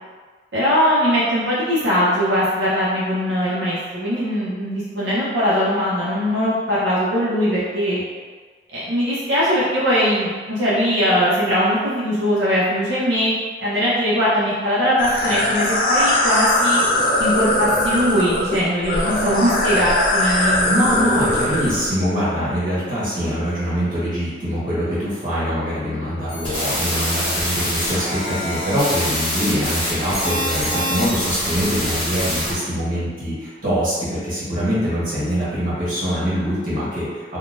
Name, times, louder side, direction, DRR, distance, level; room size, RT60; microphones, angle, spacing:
voice 1, 0.5-8.0 8.7-13.3 13.6-16.9 17.2-20.9, equal, 90° right, -9 dB, 0.7 m, -20 dB
sound 1, 15.0-21.9, left 1 dB, 45° left, 0.5 m, -20 dB
voice 2, 20.7-37.4, equal, 50° right, -10 dB, 1.2 m, -23 dB
sound 2, 26.3-32.5, equal, 30° left, 1.4 m, -25 dB
3.7 x 2.3 x 2.5 m, 1.5 s
head